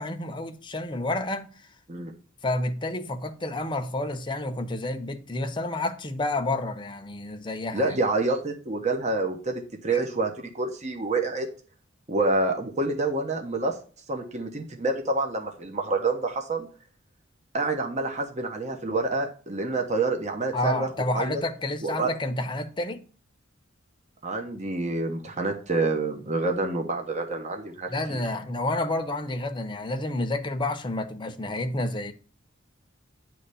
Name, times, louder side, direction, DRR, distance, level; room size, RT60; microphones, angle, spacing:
voice 1, 0.0-1.5 2.4-8.0 9.9-10.0 20.5-23.0 27.9-32.1, left 2 dB, 25° left, 0.8 m, -30 dB
voice 2, 7.7-11.5 12.1-13.8 14.1-16.7 17.5-21.4 21.8-22.1 24.2-28.2, right 3 dB, 35° right, 1.0 m, -27 dB
9.8 x 3.3 x 6.8 m
head